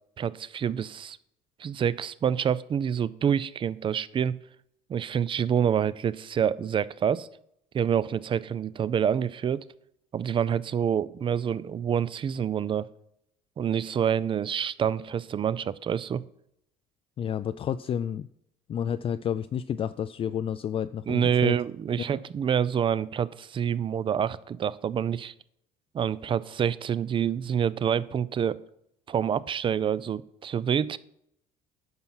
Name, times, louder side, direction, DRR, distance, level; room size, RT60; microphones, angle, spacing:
voice 1, 0.2-1.2 1.6-4.3 4.9-7.3 7.7-9.6 10.1-12.9 13.6-16.2 21.1-25.3 25.9-28.6 29.1-31.0, right 8 dB, 35° right, 19 dB, 0.4 m, -27 dB
voice 2, 17.2-18.3 18.7-21.5, left 9 dB, 35° left, 12 dB, 0.4 m, -30 dB
9.6 x 5.8 x 5.6 m, 0.75 s
supercardioid pair, 95°, 16 cm